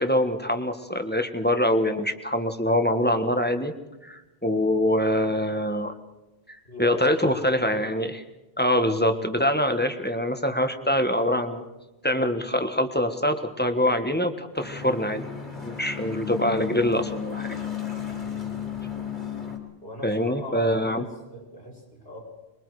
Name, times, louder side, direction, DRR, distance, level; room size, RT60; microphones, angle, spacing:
voice 1, 0.0-3.7 4.0-5.9 6.8-8.2 8.6-11.6 12.0-15.2 15.6-17.6 20.0-21.0, left 1 dB, 10° left, 7 dB, 1.4 m, -24 dB
voice 2, 6.6-7.6 18.2-18.6 19.8-22.2, left 1 dB, 85° left, -4 dB, 7.7 m, -40 dB
sound 1, 14.5-19.6, left 8 dB, 45° left, 3.3 m, -34 dB
26.5 x 22.5 x 4.9 m, 1.0 s
omnidirectional pair, 1.1 m